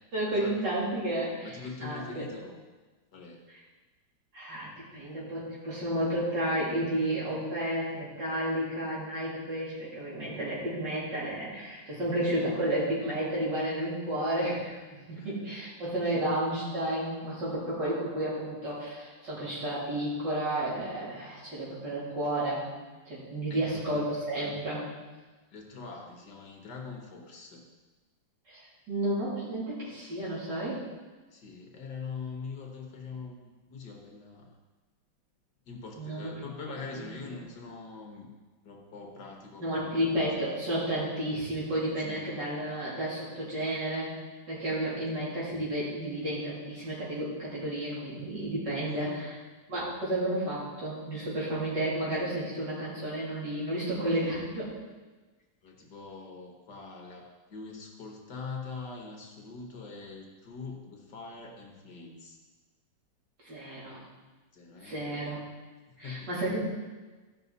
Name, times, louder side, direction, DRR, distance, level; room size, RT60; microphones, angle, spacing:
voice 1, 0.1-2.3 3.5-3.6 4.3-14.8 15.1-22.7 23.1-24.9 28.5-30.8 36.0-36.3 36.7-37.1 39.6-44.1 44.5-49.4 49.7-54.7 63.4-64.0 64.8-65.4 66.0-66.6, right 1 dB, 60° right, -8 dB, 3.7 m, -32 dB
voice 2, 1.4-2.6 3.1-3.4 15.2-15.3 23.5-24.0 25.5-27.7 31.3-34.6 35.7-38.3 38.7-40.1 42.0-42.3 45.1-45.2 48.9-49.3 55.6-62.4 64.5-65.2 66.0-66.3 66.6-66.7, left 4 dB, 60° left, 0 dB, 1.8 m, -43 dB
14.0 x 5.8 x 4.0 m, 1.3 s
omnidirectional pair, 2.1 m